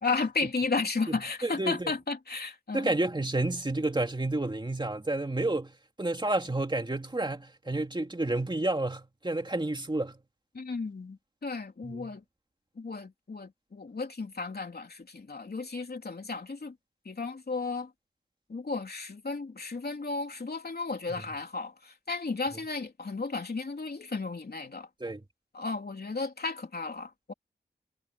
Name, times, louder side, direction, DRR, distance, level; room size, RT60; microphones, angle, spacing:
voice 1, 0.0-2.9 10.5-12.2 12.7-16.8 17.0-17.9 18.5-24.9 25.5-27.3, left 4 dB, 55° left, 3.3 m, -34 dB
voice 2, 1.1-1.9 2.7-10.2 11.8-12.1 25.0-25.2, right 2 dB, 25° right, 2.5 m, -30 dB
wide cardioid pair, 90°, 19 cm